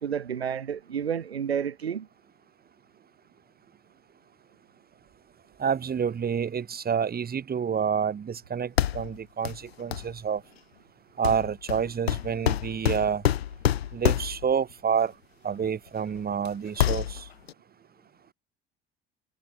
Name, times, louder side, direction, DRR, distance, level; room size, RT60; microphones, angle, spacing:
voice 1, 0.0-2.1, right 8 dB, 90° right, 0.8 m, -30 dB
voice 2, 5.6-10.4 11.2-13.2 13.9-15.1 15.4-17.3, right 7 dB, 30° right, 2.1 m, -28 dB
sound 1, 8.8-9.2 9.5-9.6 9.9-10.1 11.2-14.5 15.6-15.7 16.2-16.5 16.7-17.5, left 11 dB, 80° left, 1.1 m, -27 dB
figure-of-eight pair, 65°, 31 cm